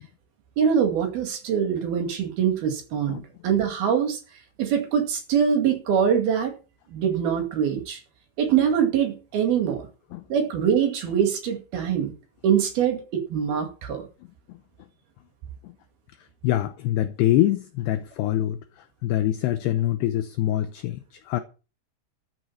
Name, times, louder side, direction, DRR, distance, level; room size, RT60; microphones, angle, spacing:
voice 1, 0.6-4.2 4.6-6.5 6.9-8.0 8.4-9.8 10.3-12.1 12.4-14.1, right 8 dB, 55° right, 3.6 m, -23 dB
voice 2, 16.4-18.6 19.0-21.4, left 13 dB, 75° left, 2.5 m, -24 dB
14.0 x 7.9 x 5.7 m
omnidirectional pair, 5.8 m